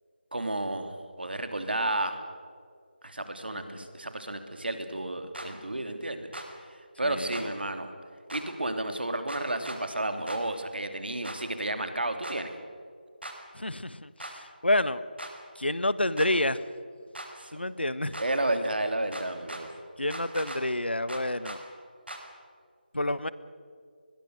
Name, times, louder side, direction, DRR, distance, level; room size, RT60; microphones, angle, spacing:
voice 1, 0.3-2.2 3.0-6.3 6.6-7.9 8.3-12.5 17.4-17.5 18.2-19.7, right 1 dB, 70° right, 7 dB, 3.0 m, -32 dB
sound 1, 5.3-5.5 6.3-6.5 7.3-7.5 8.3-8.4 9.3-9.8 10.3-10.4 11.2-11.4 12.2-12.4 13.2-13.4 14.2-14.3 15.2-15.3 16.2-16.3 17.1-17.3 18.1-18.3 19.1-19.6 20.1-20.6 21.1-21.6 22.1-22.2, right 1 dB, 90° right, 5.0 m, -39 dB
voice 2, 7.0-7.5 13.5-15.0 15.6-16.6 17.5-18.2 20.0-21.6 22.9-23.3, left 1 dB, 85° left, 15 dB, 1.2 m, -29 dB
25.0 x 21.5 x 6.6 m, 2.2 s
figure-of-eight pair, 165°, 6 cm